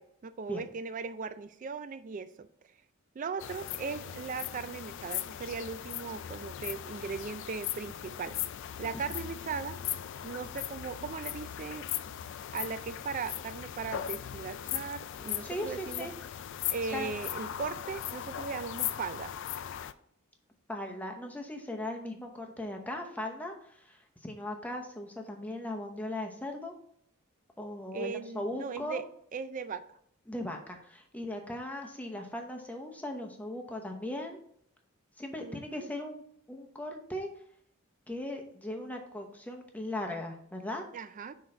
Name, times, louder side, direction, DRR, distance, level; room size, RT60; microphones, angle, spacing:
voice 1, 0.0-2.5 3.2-8.4 8.8-9.8 10.2-11.9 12.5-16.1 16.7-19.3 27.9-29.0 29.3-29.8 35.4-35.9 40.9-41.4, right 5 dB, 40° right, 13 dB, 0.3 m, -38 dB
sound 1, 3.4-19.9, left 11 dB, 60° left, 0.3 m, -38 dB
voice 2, 15.4-16.1 16.9-17.1 20.7-26.7 27.6-29.0 30.3-34.4 35.2-36.2 36.5-37.3 38.1-40.8, left 1 dB, 5° left, 2 dB, 0.8 m, -38 dB
6.0 x 3.9 x 4.3 m, 0.66 s
head